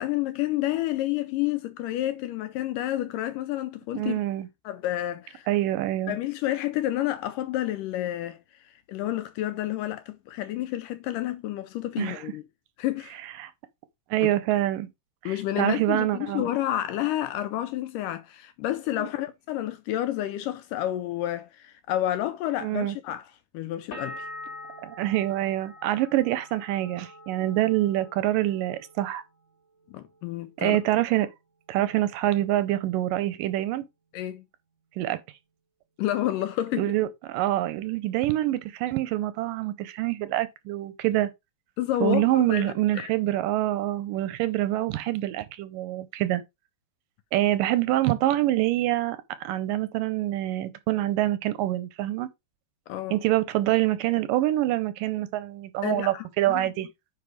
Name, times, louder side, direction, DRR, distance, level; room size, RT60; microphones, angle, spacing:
voice 1, 0.0-4.2 4.7-5.5 6.1-8.4 8.7-12.4 12.8-13.2 14.2-14.3 15.3-24.3 29.9-30.8 34.1-34.4 36.0-36.9 41.8-43.1 52.9-53.2 55.8-56.7, left 13 dB, 80° left, 2.0 m, -30 dB
voice 2, 4.0-4.5 5.5-6.2 12.0-12.2 13.4-13.5 14.1-14.9 15.2-16.4 19.0-19.1 22.6-23.0 24.8-29.2 30.6-31.3 31.7-33.9 35.0-35.2 36.8-41.3 42.0-46.4 47.3-52.3 53.1-56.9, right 15 dB, 80° right, 2.2 m, -26 dB
sound 1, 23.9-29.5 29.8-30.6, left 1 dB, 40° left, 3.9 m, -44 dB
9.6 x 3.9 x 4.7 m
omnidirectional pair, 4.2 m